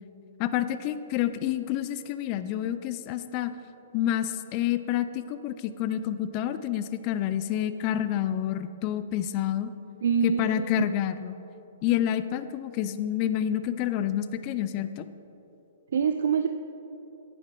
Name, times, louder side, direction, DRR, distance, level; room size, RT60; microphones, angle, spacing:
voice 1, 0.4-3.5 3.9-9.7 10.2-11.4 11.8-15.1, left 11 dB, 35° left, 12 dB, 0.4 m, -28 dB
voice 2, 10.0-10.9 15.9-16.5, right 7 dB, 70° right, 8 dB, 0.4 m, -25 dB
9.7 x 7.2 x 4.6 m, 2.9 s
hypercardioid pair, 145°, 0 cm